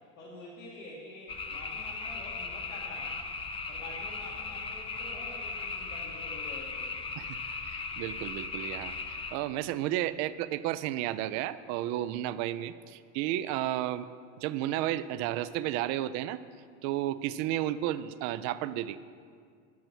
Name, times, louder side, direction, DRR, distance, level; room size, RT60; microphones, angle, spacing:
voice 1, 0.0-3.2 3.7-6.9, left 2 dB, 85° left, -5 dB, 2.0 m, -47 dB
sound 1, 1.3-9.4, left 4 dB, 15° left, 0.5 m, -37 dB
voice 2, 7.7-14.1 14.4-16.4 16.8-19.0, right 13 dB, 45° right, 14 dB, 0.5 m, -32 dB
9.4 x 7.4 x 6.1 m, 2.1 s
hypercardioid pair, 105°, 40 cm